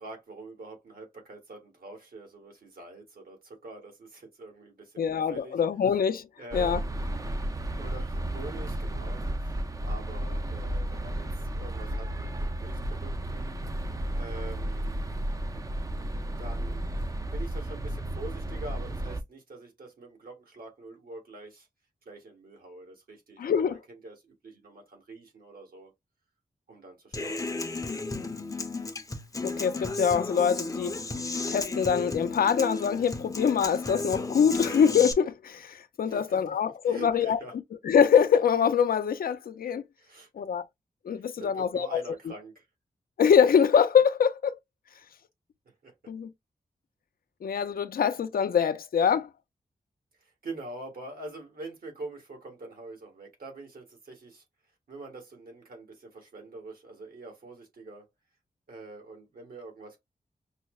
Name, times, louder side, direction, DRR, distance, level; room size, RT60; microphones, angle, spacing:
voice 1, 0.0-5.6 6.4-7.0 7.8-9.3 9.8-13.6 14.1-14.9 16.4-16.8 17.3-21.7 22.0-23.8 24.0-24.1 24.4-25.9 26.7-28.6 36.1-36.6 36.8-37.5 40.0-40.3 41.1-42.6 45.8-45.9 50.2-54.4 54.9-58.1 58.7-60.0, right 2 dB, 75° right, 1.5 m, -45 dB
voice 2, 5.0-6.3 6.5-6.8 23.4-23.8 29.4-31.0 31.5-37.4 37.8-39.8 40.4-40.6 41.0-42.0 43.2-44.6 46.1-46.3 47.4-49.3, left 7 dB, 70° left, 0.5 m, -24 dB
sound 1, 6.5-19.2, right 1 dB, 20° right, 0.4 m, -33 dB
Human voice / Acoustic guitar, 27.1-35.1, left 3 dB, 20° left, 0.6 m, -33 dB
5.5 x 2.1 x 2.3 m
wide cardioid pair, 110°, 15 cm